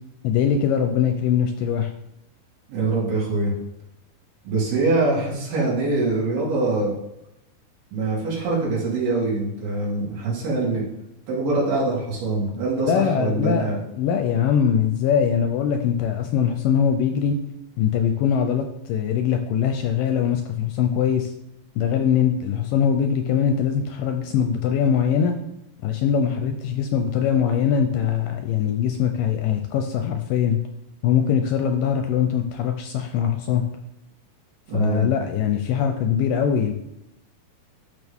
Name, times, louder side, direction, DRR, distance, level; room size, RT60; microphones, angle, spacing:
voice 1, 0.2-1.9 12.8-17.4 17.8-21.3 21.8-25.3 25.8-30.6 31.0-33.6 34.7-36.7, left 8 dB, 75° left, 5 dB, 2.1 m, -22 dB
voice 2, 2.7-3.5 4.4-6.9 7.9-10.8 11.3-13.8 34.7-35.1, right 2 dB, 85° right, -6 dB, 5.0 m, -23 dB
12.5 x 6.3 x 3.6 m, 0.85 s
omnidirectional pair, 4.3 m